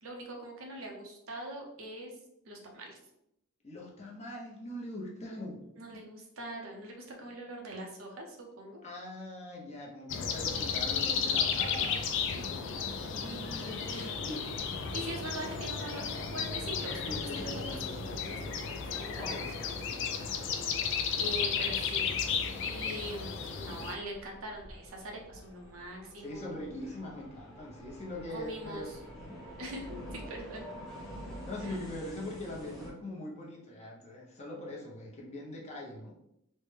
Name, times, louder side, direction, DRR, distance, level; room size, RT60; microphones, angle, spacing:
voice 1, 0.0-2.1 2.5-3.0 5.8-8.8 13.2-14.1 14.9-19.5 20.9-22.2 22.6-26.6 28.3-29.0 29.6-30.7 31.6-31.8, right 1 dB, 75° right, 1 dB, 0.7 m, -43 dB
voice 2, 3.6-5.6 8.8-12.9 13.1-14.6 17.0-18.0 19.1-20.2 26.2-29.4 31.2-36.1, left 1 dB, 35° left, -3 dB, 0.7 m, -42 dB
sound 1, 10.1-23.9, left 6 dB, 60° left, 0.3 m, -33 dB
sound 2, 23.9-32.9, equal, ahead, 0.9 m, -47 dB
3.2 x 2.1 x 3.2 m, 0.80 s
head